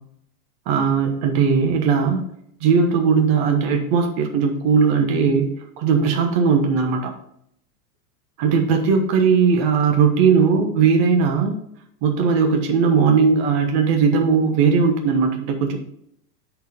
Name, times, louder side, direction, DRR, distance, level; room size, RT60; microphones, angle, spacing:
voice 1, 0.7-2.2 2.6-5.5 5.8-7.1 8.4-11.5 12.0-15.8, right 5 dB, 40° right, 3 dB, 1.3 m, -18 dB
10.0 x 4.6 x 3.6 m, 0.72 s
supercardioid pair, 165°, 47 cm